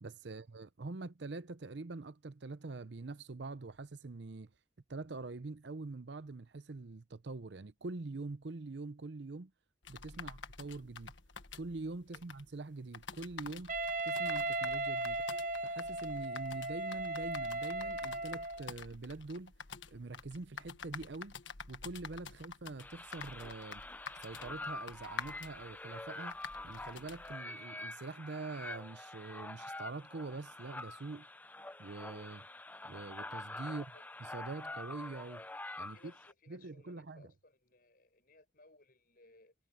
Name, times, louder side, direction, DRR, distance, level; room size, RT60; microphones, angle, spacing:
voice 1, 0.0-4.5 4.9-9.5 9.9-11.1 11.6-13.7 14.0-15.2 15.6-19.5 19.9-21.4 21.7-23.8 24.2-26.4 26.6-31.3 31.8-32.5 32.8-33.8 34.3-35.4 35.8-36.1 36.5-37.3, right 3 dB, 60° right, 0.7 m, -44 dB
sound 1, 9.8-27.3, left 5 dB, 70° left, 1.5 m, -49 dB
Wind instrument woodwind instrument, 13.7-18.7, right 2 dB, 40° right, 0.9 m, -37 dB
sound 2, 22.8-36.3, left 2 dB, 10° left, 0.7 m, -46 dB
voice 2, 33.6-34.0 35.8-39.5, left 2 dB, 45° left, 6.1 m, -62 dB
head